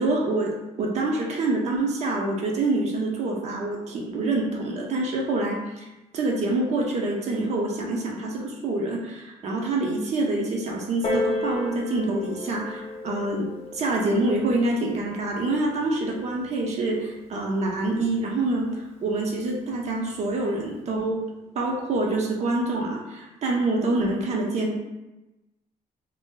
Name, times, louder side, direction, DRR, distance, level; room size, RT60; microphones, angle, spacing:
voice 1, 0.0-5.9 6.1-21.2 21.5-24.8, right 2 dB, 50° right, -1 dB, 0.5 m, -26 dB
Piano, 11.0-16.2 17.1-17.2, left 2 dB, 45° left, 0.8 m, -33 dB
2.5 x 2.1 x 3.7 m, 1.0 s
cardioid pair, 155°, 15 cm